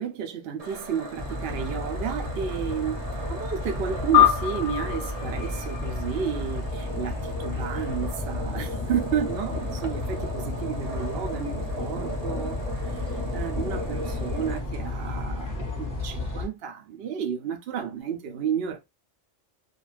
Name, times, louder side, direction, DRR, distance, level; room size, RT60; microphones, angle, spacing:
voice 1, 0.0-3.0 3.3-18.8, right 7 dB, 65° right, 0.8 m, -32 dB
sound 1, 0.6-14.6, right 1 dB, 35° right, 0.8 m, -37 dB
sound 2, 1.2-16.5, left 2 dB, 20° left, 0.8 m, -33 dB
sound 3, 4.1-6.9, left 11 dB, 50° left, 0.7 m, -24 dB
2.4 x 2.4 x 3.1 m
omnidirectional pair, 1.2 m